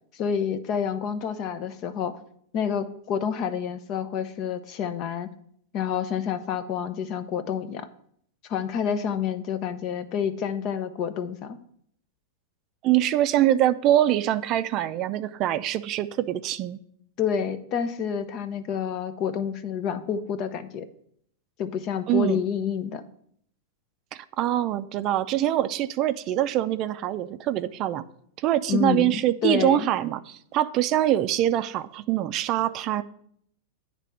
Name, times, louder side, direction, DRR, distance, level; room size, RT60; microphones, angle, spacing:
voice 1, 0.1-2.2 2.5-5.3 5.7-7.9 8.5-11.6 17.2-20.9 21.6-23.0 28.7-29.9, left 7 dB, 40° left, 10 dB, 0.7 m, -28 dB
voice 2, 12.8-16.8 22.1-22.4 24.4-28.0 28.4-33.0, right 13 dB, 40° right, 12 dB, 0.4 m, -24 dB
9.1 x 3.3 x 6.2 m, 0.68 s
hypercardioid pair, 125°, 0 cm